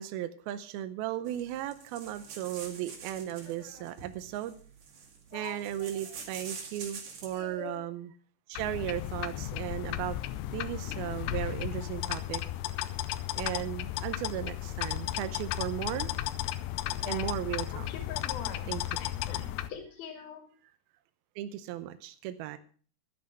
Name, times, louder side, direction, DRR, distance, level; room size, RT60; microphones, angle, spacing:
voice 1, 0.0-4.5 5.3-8.1 8.5-10.2 10.5-12.4 13.4-16.1 17.1-17.9 18.7-18.8 21.4-22.6, right 12 dB, 75° right, 11 dB, 2.5 m, -36 dB
sound 1, 1.3-7.5, right 5 dB, 50° right, 3.1 m, -46 dB
voice 2, 3.1-3.9 5.3-6.2 7.3-7.9 12.8-13.0 17.0-17.3 17.7-18.7 19.0-20.4, left 7 dB, 65° left, 5 dB, 3.7 m, -45 dB
sound 2, 8.6-19.7, left 13 dB, 90° left, 2.9 m, -34 dB
12.0 x 9.7 x 6.4 m, 0.42 s
omnidirectional pair, 4.7 m